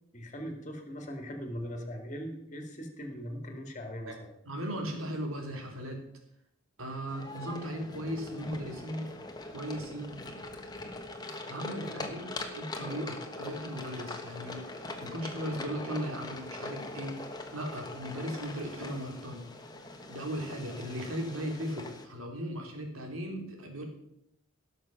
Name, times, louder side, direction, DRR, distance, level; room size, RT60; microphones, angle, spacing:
voice 1, 0.1-4.3, equal, 35° left, 4 dB, 2.2 m, -40 dB
voice 2, 4.4-6.0 6.8-9.1 9.5-10.2 11.5-14.6 15.0-17.2 17.5-19.4 20.1-23.8, equal, 80° right, 2 dB, 3.2 m, -37 dB
sound 1, 7.1-22.1, left 2 dB, 20° left, 1.2 m, -42 dB
17.0 x 6.7 x 5.9 m, 0.78 s
head